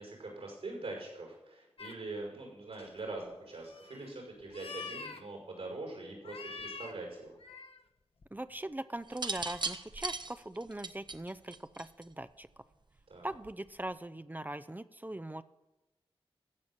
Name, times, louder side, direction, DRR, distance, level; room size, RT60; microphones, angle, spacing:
voice 1, 0.0-7.4 13.1-13.3, right 2 dB, 80° right, 0 dB, 5.8 m, -43 dB
sound 1, 1.8-1.9 2.7-3.1 3.6-4.1 4.4-5.2 6.2-7.0 7.3-7.8 8.2-8.3, left 4 dB, 65° left, 1.2 m, -45 dB
voice 2, 8.3-12.5 13.2-15.4, right 1 dB, 15° right, 13 dB, 0.6 m, -41 dB
sound 2, 9.1-12.2 13.3-13.7, right 3 dB, 45° right, 1.0 m, -38 dB
15.0 x 5.8 x 8.0 m, 0.99 s
cardioid pair, 40°, 10 cm